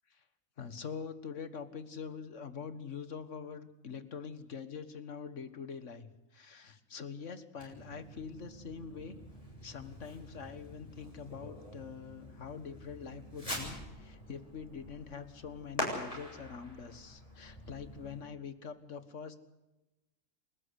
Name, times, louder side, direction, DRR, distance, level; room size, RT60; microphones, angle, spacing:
voice 1, 0.6-9.3 9.6-19.4, left 6 dB, 65° left, 12 dB, 1.9 m, -44 dB
Fireworks, 7.5-18.2, equal, 25° left, 7.4 m, -44 dB
29.0 x 13.5 x 8.3 m, 1.0 s
omnidirectional pair, 1.3 m